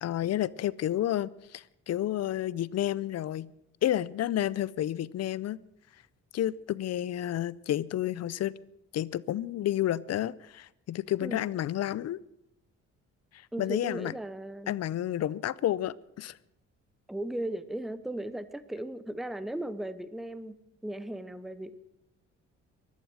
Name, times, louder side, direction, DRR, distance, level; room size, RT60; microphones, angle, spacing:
voice 1, 0.0-3.5 3.8-5.6 6.3-8.5 8.9-12.2 13.6-14.1 14.7-16.4, left 12 dB, 55° left, 21 dB, 0.5 m, -30 dB
voice 2, 13.5-14.8 17.1-21.8, right 1 dB, ahead, 13 dB, 0.7 m, -37 dB
16.0 x 11.5 x 6.2 m, 0.83 s
cardioid pair, 90°, 30 cm